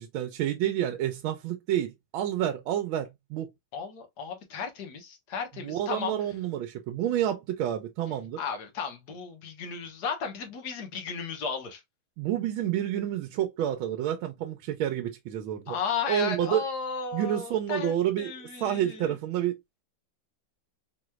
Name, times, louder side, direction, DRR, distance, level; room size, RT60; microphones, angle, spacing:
voice 1, 0.0-3.5 5.6-8.4 12.2-15.8 16.1-16.6 17.1-18.3 18.6-19.6, right 11 dB, 85° right, 1.4 m, -29 dB
voice 2, 3.7-6.1 8.4-11.8 15.7-19.2, left 6 dB, 55° left, 1.6 m, -34 dB
4.5 x 3.0 x 2.2 m
omnidirectional pair, 2.2 m